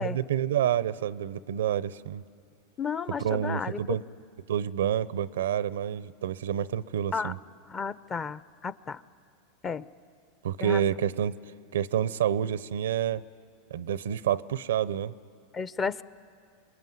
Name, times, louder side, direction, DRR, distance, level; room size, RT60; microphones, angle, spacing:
voice 1, 0.0-2.2 3.2-4.0 4.5-7.4 10.4-11.4 11.7-13.2 13.7-15.1, right 10 dB, 90° right, 18 dB, 0.6 m, -28 dB
voice 2, 2.8-3.8 7.1-7.3 7.7-9.0 9.6-9.8 10.6-10.8 15.5-16.0, left 5 dB, 25° left, 16 dB, 0.6 m, -32 dB
26.5 x 21.5 x 9.4 m, 2.3 s
hypercardioid pair, 115°, 0 cm